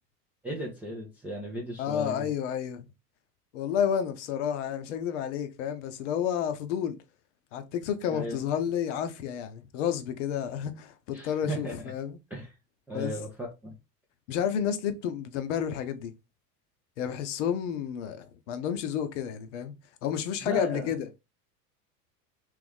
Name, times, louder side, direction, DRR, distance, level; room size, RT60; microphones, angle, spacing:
voice 1, 0.4-2.3 8.1-8.4 11.1-11.9 12.3-12.5 12.9-13.7 20.4-20.9, right 1 dB, 5° right, 0.3 m, -36 dB
voice 2, 1.8-2.9 3.5-7.0 7.5-12.2 12.9-13.2 14.3-16.1 17.0-19.7 20.0-21.1, left 9 dB, 50° left, 0.7 m, -30 dB
3.4 x 3.2 x 3.4 m
figure-of-eight pair, 75°, 48 cm